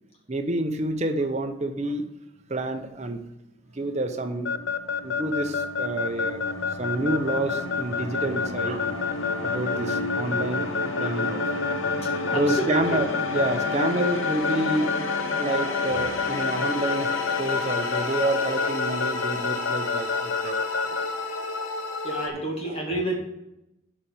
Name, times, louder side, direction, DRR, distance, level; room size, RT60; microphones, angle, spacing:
voice 1, 0.3-2.1 2.5-3.2 3.7-4.5 5.0-6.4 6.8-9.0 9.4-11.4 12.3-14.9 15.3-17.1 17.4-21.0 22.7-22.8, right 2 dB, 35° right, 6 dB, 0.8 m, -28 dB
sound 1, 3.9-22.3, left 2 dB, 80° left, 1.0 m, -31 dB
Keyboard (musical) / Alarm, 4.5-21.1, left 6 dB, 60° left, 0.5 m, -27 dB
voice 2, 12.2-13.0 22.0-23.1, right 1 dB, 30° left, -2 dB, 2.1 m, -29 dB
7.2 x 5.3 x 7.1 m, 0.89 s
head